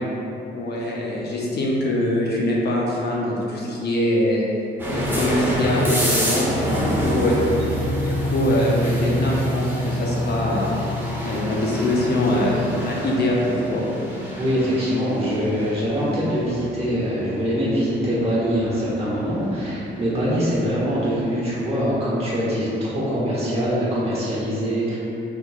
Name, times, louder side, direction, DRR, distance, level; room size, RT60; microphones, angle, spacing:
voice 1, 0.5-4.5 4.9-7.3 7.7-10.8 11.2-13.8, left 1 dB, 55° left, -3 dB, 0.6 m, -23 dB
sound 1, 4.8-21.6, equal, 10° right, 0.8 m, -27 dB
voice 2, 6.4-7.2 14.4-25.0, equal, 30° right, -8 dB, 1.3 m, -23 dB
3.8 x 2.9 x 2.3 m, 2.8 s
cardioid pair, 90°, 20 cm